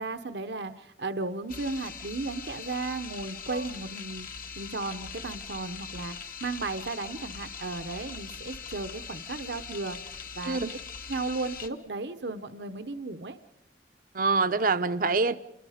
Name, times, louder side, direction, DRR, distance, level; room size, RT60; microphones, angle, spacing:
voice 1, 0.0-10.6 11.1-13.4, right 3 dB, 75° right, 1.0 m, -35 dB
sound 1, 1.5-11.7, left 6 dB, 55° left, 1.3 m, -41 dB
voice 2, 10.4-10.8 14.1-15.4, right 4 dB, 50° right, 0.7 m, -25 dB
28.0 x 22.5 x 5.0 m
head